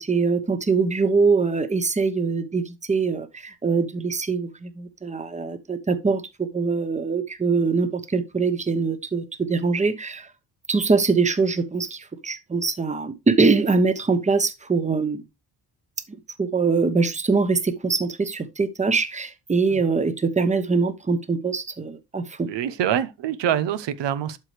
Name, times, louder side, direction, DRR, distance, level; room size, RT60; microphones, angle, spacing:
voice 1, 0.0-10.3 10.7-15.2 16.1-22.5, right 4 dB, 15° right, 1.0 m, -23 dB
voice 2, 22.5-24.4, right 10 dB, 85° right, 0.9 m, -25 dB
12.0 x 4.9 x 3.3 m
cardioid pair, 120°, 42 cm